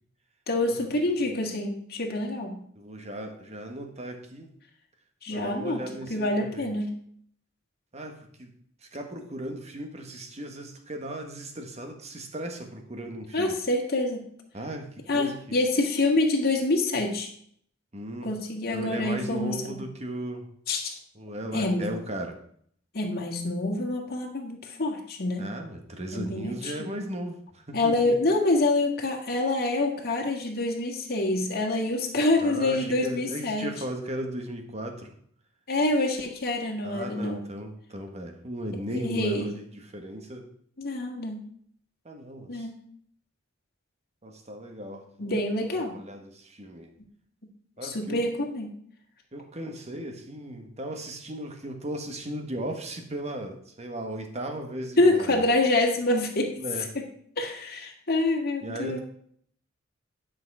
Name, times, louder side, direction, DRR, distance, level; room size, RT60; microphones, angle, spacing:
voice 1, 0.5-2.6 5.2-5.8 6.1-6.9 13.3-14.2 15.1-17.3 18.2-19.8 20.7-20.9 21.5-21.9 22.9-25.5 26.1-26.9 27.7-33.7 35.7-37.4 38.9-39.5 40.8-41.4 42.5-42.7 45.2-46.0 47.8-48.7 55.0-56.6 57.4-59.0, left 2 dB, 50° left, 1 dB, 1.8 m, -26 dB
voice 2, 2.7-4.5 5.3-6.7 7.9-8.5 8.9-13.6 14.5-15.6 17.9-18.3 18.7-20.4 21.1-22.4 25.4-28.1 32.4-35.1 36.8-40.5 42.0-42.7 44.2-45.3 45.7-46.9 47.8-48.3 49.3-55.4 56.6-56.9 58.6-59.0, right 1 dB, 35° right, 4 dB, 1.4 m, -36 dB
10.5 x 6.4 x 4.8 m, 0.63 s
head